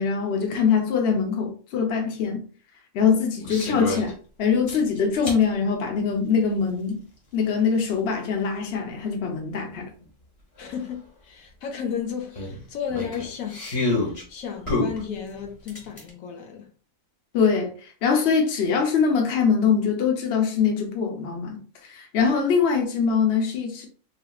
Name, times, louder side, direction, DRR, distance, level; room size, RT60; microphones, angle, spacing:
voice 1, 0.0-2.4 2.9-7.0 7.3-9.8 17.3-17.7 18.0-23.9, left 6 dB, 55° left, 0.9 m, -23 dB
sound 1, 3.4-4.1 4.7-5.4 6.9-7.0 9.7-9.8 10.0-10.1 10.6-10.7 12.4-14.2 14.7-16.1, left 2 dB, 30° left, 0.8 m, -28 dB
voice 2, 10.6-13.7 14.0-16.7, left 7 dB, 80° left, 1.1 m, -33 dB
3.3 x 2.8 x 2.3 m
omnidirectional pair, 1.4 m